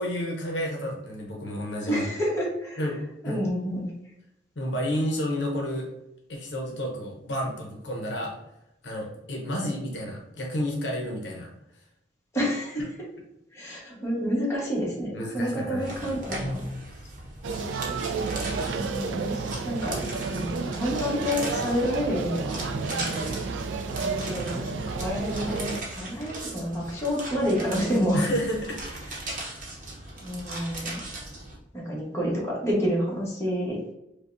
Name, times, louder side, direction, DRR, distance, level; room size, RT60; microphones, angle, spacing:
voice 1, 0.0-2.0 2.8-3.0 3.2-3.4 4.6-5.9 6.3-8.4 8.8-11.5 14.0-14.1 15.1-16.2 28.1-29.2, equal, 65° left, -1 dB, 0.7 m, -31 dB
voice 2, 1.9-2.8 3.2-3.9 9.6-9.7 12.3-13.1 13.5-16.6 17.5-17.7 18.6-23.4 24.0-28.2 30.2-31.0 31.7-33.8, equal, 15° left, -6 dB, 1.1 m, -29 dB
sound 1, 15.8-31.6, right 1 dB, 45° right, 0.8 m, -38 dB
sound 2, 17.4-25.8, right 4 dB, 80° right, 0.3 m, -31 dB
5.0 x 2.2 x 2.5 m, 0.85 s
head